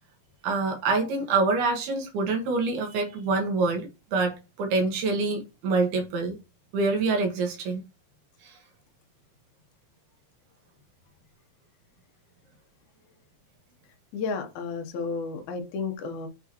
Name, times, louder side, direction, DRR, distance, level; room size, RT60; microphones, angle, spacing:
voice 1, 0.4-6.4 6.7-7.8 8.4-8.6, right 3 dB, 70° right, 2.9 m, -26 dB
voice 2, 14.1-16.3, left 4 dB, 85° left, 1.6 m, -32 dB
9.9 x 3.6 x 3.0 m
omnidirectional pair, 5.2 m